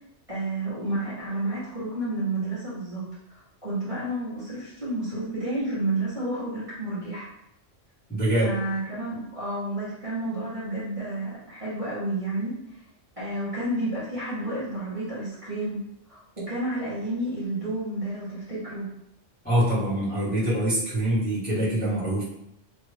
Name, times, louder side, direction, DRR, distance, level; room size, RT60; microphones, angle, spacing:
voice 1, 0.3-3.0 3.3-7.3 8.4-12.5 13.2-15.8 16.1-18.9, right 1 dB, 30° right, -12 dB, 1.1 m, -30 dB
voice 2, 8.1-8.5 19.4-22.2, right 1 dB, 10° left, -11 dB, 1.2 m, -24 dB
3.0 x 2.5 x 3.2 m, 0.80 s
omnidirectional pair, 1.2 m